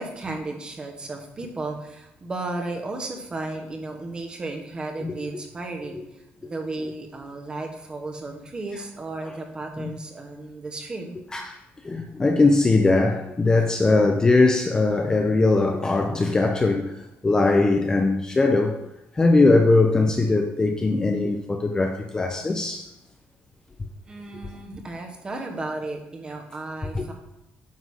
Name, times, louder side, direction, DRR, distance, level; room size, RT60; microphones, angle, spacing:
voice 1, 0.0-11.3 24.0-27.1, right 2 dB, 20° right, 1.3 m, -34 dB
voice 2, 11.8-18.8 19.1-22.9 26.9-27.1, left 3 dB, 15° left, 0.6 m, -20 dB
9.5 x 3.9 x 6.3 m
cardioid pair, 170°, 4 cm